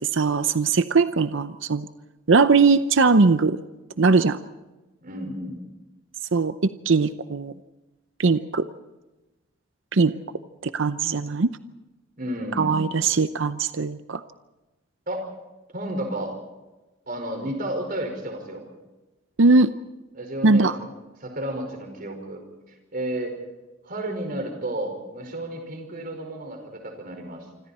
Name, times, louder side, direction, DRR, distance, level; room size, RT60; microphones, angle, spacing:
voice 1, 0.1-1.9 2.3-3.6 4.0-4.4 6.3-7.5 8.2-8.7 9.9-10.1 10.6-11.5 12.6-14.2 19.4-19.7 20.4-20.8, right 4 dB, 70° right, 11 dB, 0.7 m, -20 dB
voice 2, 5.0-5.6 12.2-12.8 15.1-15.3 15.7-16.4 17.1-18.7 20.1-20.7 21.2-22.4 22.9-23.4 23.8-27.5, right 1 dB, 45° right, 4 dB, 5.1 m, -32 dB
27.0 x 25.5 x 4.3 m, 1.1 s
head